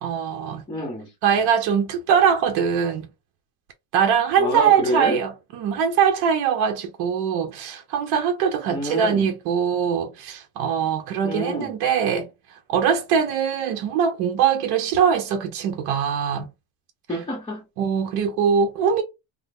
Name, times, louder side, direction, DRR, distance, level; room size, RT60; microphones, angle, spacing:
voice 1, 0.0-0.6 1.2-3.1 3.9-12.3 12.7-16.5 17.8-19.0, right 7 dB, 60° right, 0.7 m, -22 dB
voice 2, 0.7-1.1 4.4-5.2 8.7-9.3 11.2-11.8 17.1-17.6, left 1 dB, 10° left, 0.8 m, -27 dB
3.3 x 2.0 x 3.5 m
cardioid pair, 145°, 45 cm